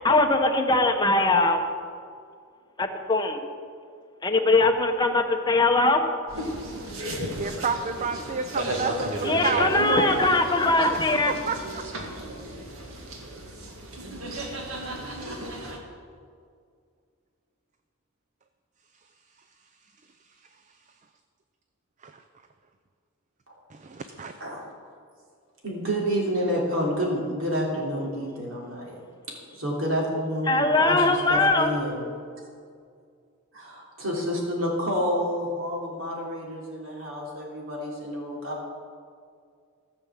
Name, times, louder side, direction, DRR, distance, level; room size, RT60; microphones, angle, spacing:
voice 1, 0.0-1.6 2.8-3.4 4.2-6.0 9.2-11.3 30.5-31.7, left 2 dB, 20° left, 4 dB, 1.0 m, -21 dB
sound 1, 6.3-15.8, right 1 dB, 85° right, 2.0 m, -34 dB
voice 2, 7.4-10.3 10.9-11.0 11.3-11.8 22.0-22.2 23.7-24.3, right 4 dB, 35° right, 7 dB, 0.5 m, -30 dB
voice 3, 24.1-24.6 25.6-29.0 29.5-32.0 33.5-38.7, equal, 65° right, -3 dB, 3.4 m, -29 dB
15.0 x 6.9 x 7.5 m, 2.2 s
head